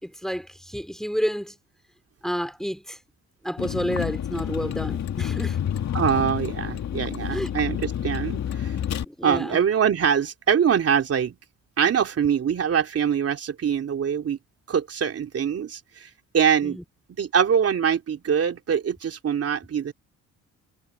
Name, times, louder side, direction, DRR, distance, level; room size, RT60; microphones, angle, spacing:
voice 1, 0.0-1.6 2.2-3.0 3.4-5.6 7.3-7.5 9.0-9.6 16.6-16.8, equal, ahead, 3.0 m, -30 dB
Vehicle, 3.6-9.0, left 9 dB, 65° left, 2.5 m, -29 dB
voice 2, 5.9-8.7 9.2-11.4 11.8-14.4 14.7-16.8 17.1-19.9, right 7 dB, 50° right, 3.4 m, -23 dB
cardioid pair, 90°, 30 cm